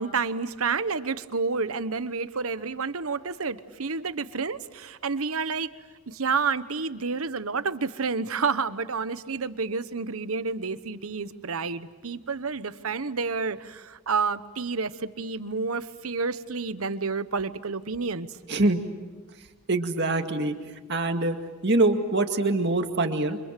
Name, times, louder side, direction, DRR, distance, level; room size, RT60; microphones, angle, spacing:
voice 1, 0.0-5.7 6.1-18.3, right 4 dB, 80° right, 13 dB, 1.1 m, -29 dB
voice 2, 18.5-18.8 19.7-20.6 20.9-21.4 21.6-23.4, right 2 dB, 50° right, 5 dB, 2.1 m, -24 dB
29.5 x 26.0 x 7.6 m, 1.3 s
head